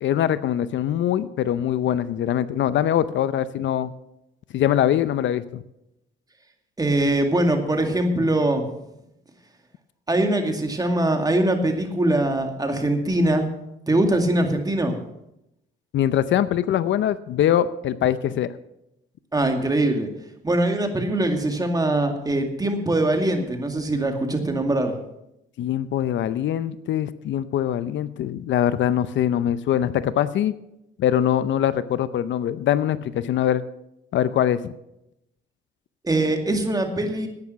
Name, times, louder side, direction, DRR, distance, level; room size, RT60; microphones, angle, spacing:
voice 1, 0.0-3.9 4.5-5.6 15.9-18.5 25.6-30.5 31.0-33.6 34.1-34.7, left 10 dB, 70° left, 15 dB, 0.6 m, -23 dB
voice 2, 6.8-8.7 10.1-13.5 13.9-15.0 19.3-20.1 20.4-24.9 36.0-37.3, right 1 dB, 20° right, 4 dB, 2.2 m, -22 dB
10.5 x 9.5 x 6.8 m, 0.86 s
cardioid pair, 90°, 20 cm